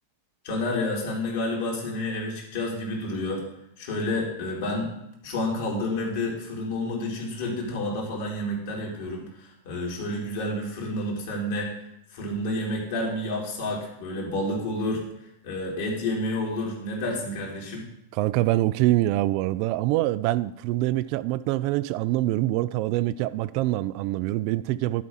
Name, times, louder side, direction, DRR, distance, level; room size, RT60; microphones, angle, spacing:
voice 1, 0.4-3.5 3.8-4.9 5.2-11.7 12.1-15.0 15.4-17.9, left 1 dB, 60° left, 3.2 m, -29 dB
voice 2, 18.1-25.0, right 16 dB, 50° right, 0.3 m, -25 dB
11.0 x 4.7 x 5.6 m
hypercardioid pair, 95°, 0 cm